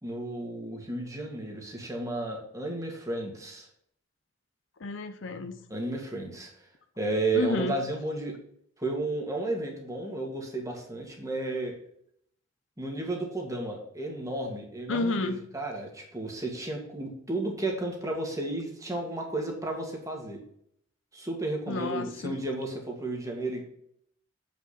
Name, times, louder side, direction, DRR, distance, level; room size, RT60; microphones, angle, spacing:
voice 1, 0.0-3.7 5.7-6.5 7.0-8.3 8.8-11.7 12.8-20.4 21.1-23.6, right 2 dB, 15° right, 0 dB, 1.9 m, -33 dB
voice 2, 4.8-5.6 7.3-7.7 14.9-15.4 21.7-22.4, left 3 dB, 70° left, 10 dB, 0.7 m, -31 dB
7.9 x 5.4 x 4.2 m, 0.69 s
head